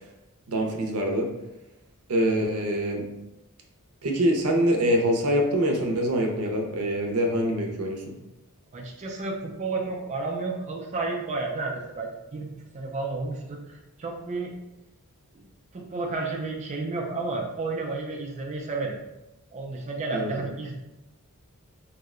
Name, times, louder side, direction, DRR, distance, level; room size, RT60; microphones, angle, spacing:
voice 1, 0.5-1.3 2.1-3.0 4.0-8.0 20.1-20.4, equal, 90° right, 1 dB, 0.6 m, -24 dB
voice 2, 8.7-14.5 15.3-15.4 15.7-19.0 19.5-20.8, right 3 dB, 30° right, -1 dB, 0.4 m, -32 dB
2.7 x 2.1 x 3.6 m, 0.97 s
head